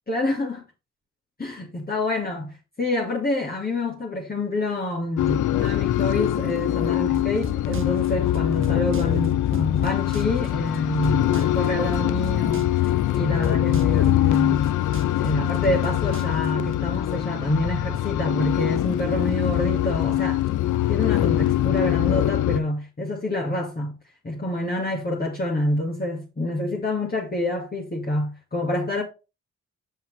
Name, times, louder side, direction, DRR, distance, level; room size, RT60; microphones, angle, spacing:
voice 1, 0.1-0.6 1.4-12.8 13.1-14.7 15.2-20.4 20.9-24.0 24.2-29.0, left 1 dB, 30° left, 1.9 m, -27 dB
sound 1, 5.2-22.6, left 13 dB, 70° left, 0.6 m, -23 dB
sound 2, 7.1-16.7, right 6 dB, 40° right, 0.9 m, -41 dB
7.4 x 5.7 x 3.3 m
supercardioid pair, 55°, 32 cm